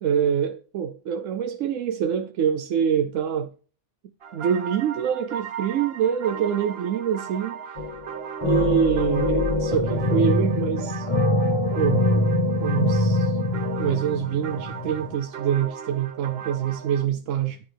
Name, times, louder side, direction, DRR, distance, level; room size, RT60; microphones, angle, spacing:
voice 1, 0.0-3.5 4.3-7.8 8.4-11.1 11.7-12.2 12.6-13.4 13.8-17.6, right 8 dB, 90° right, 1.0 m, -25 dB
sound 1, 4.2-17.1, right 7 dB, 55° right, 1.1 m, -37 dB
sound 2, 7.8-8.1 8.4-15.1, left 1 dB, 30° left, 0.9 m, -24 dB
9.7 x 9.6 x 3.4 m
omnidirectional pair, 1.3 m